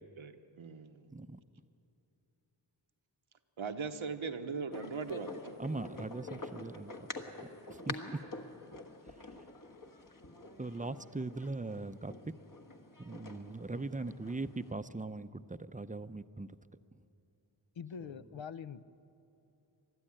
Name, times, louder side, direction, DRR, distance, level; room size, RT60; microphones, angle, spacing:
voice 1, 0.0-1.1 3.6-5.6, right 5 dB, 90° right, 8 dB, 1.1 m, -40 dB
sound 1, 4.7-14.7, left 2 dB, 45° left, 1.5 m, -47 dB
voice 2, 5.6-6.9 7.9-8.0 10.6-12.1 13.0-16.5, right 2 dB, 15° right, 12 dB, 0.5 m, -40 dB
voice 3, 13.6-14.3 15.0-15.1 17.8-18.8, left 7 dB, 70° left, 15 dB, 0.7 m, -46 dB
20.5 x 13.0 x 10.0 m, 2.8 s
wide cardioid pair, 45°, 47 cm